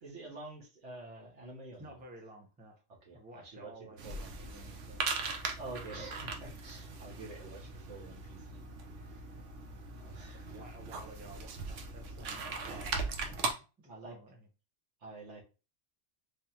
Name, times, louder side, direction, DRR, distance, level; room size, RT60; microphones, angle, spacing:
voice 1, 0.0-2.0 3.0-4.7 5.6-9.4 9.9-10.7 12.6-12.9 13.3-13.5 13.8-14.2 15.0-15.4, right 2 dB, 70° right, -2 dB, 1.5 m, -48 dB
voice 2, 1.8-2.8 3.1-5.1 10.2-12.9 13.4-14.5, right 1 dB, 10° right, 2 dB, 0.6 m, -54 dB
sound 1, 4.0-13.5, right 4 dB, 90° right, 1.0 m, -39 dB
3.5 x 3.2 x 2.8 m, 0.31 s
omnidirectional pair, 1.2 m